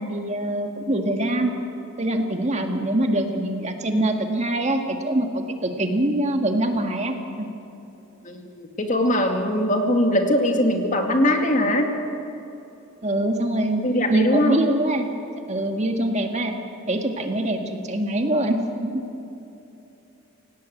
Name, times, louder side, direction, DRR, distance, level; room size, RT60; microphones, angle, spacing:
voice 1, 0.0-1.5 2.0-7.5 13.0-13.8 14.1-15.0 15.5-16.5 16.9-19.0, right 1 dB, 30° right, 4 dB, 1.8 m, -24 dB
voice 2, 8.2-11.9 13.8-14.6, left 1 dB, 35° left, 4 dB, 2.2 m, -21 dB
27.5 x 18.0 x 8.0 m, 2.9 s
head